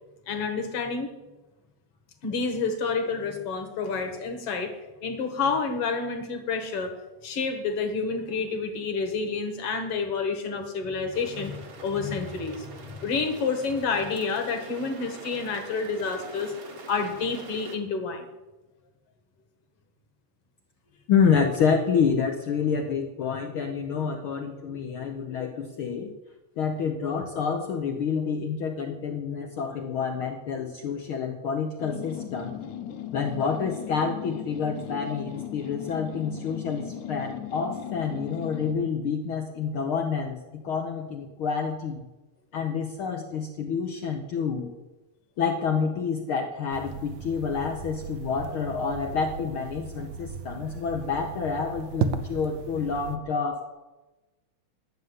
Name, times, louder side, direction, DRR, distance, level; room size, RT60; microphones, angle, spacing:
voice 1, 0.3-1.1 2.2-4.7 5.0-6.9 7.2-12.7 13.0-16.5 16.9-18.2, left 4 dB, 55° left, 6 dB, 2.3 m, -29 dB
sound 1, 11.1-17.8, right 3 dB, 40° right, 1.3 m, -45 dB
voice 2, 21.1-26.1 26.6-32.6 33.1-42.0 42.5-44.7 45.4-53.6, left 6 dB, 70° left, 4 dB, 1.3 m, -28 dB
sound 2, 31.8-38.9, left 10 dB, 90° left, 2.7 m, -37 dB
sound 3, 46.7-53.2, right 7 dB, 80° right, 2.2 m, -36 dB
11.5 x 6.7 x 9.5 m, 1.1 s
omnidirectional pair, 3.4 m